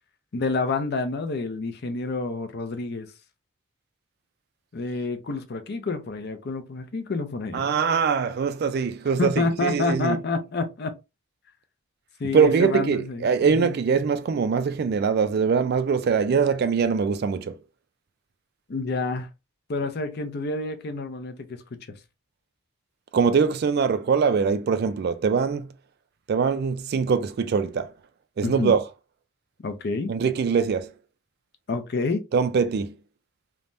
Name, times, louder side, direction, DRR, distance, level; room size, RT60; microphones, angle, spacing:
voice 1, 0.3-3.1 4.7-7.6 9.2-10.9 12.2-13.7 18.7-19.3 19.7-21.8 28.4-28.7 29.6-30.1 31.7-32.2, left 3 dB, 50° left, 0.5 m, -28 dB
voice 2, 7.5-10.2 12.3-17.6 23.1-25.7 26.3-27.9 28.4-28.9 30.1-30.9 32.3-33.0, right 6 dB, 50° right, 0.3 m, -23 dB
3.3 x 2.1 x 2.5 m
head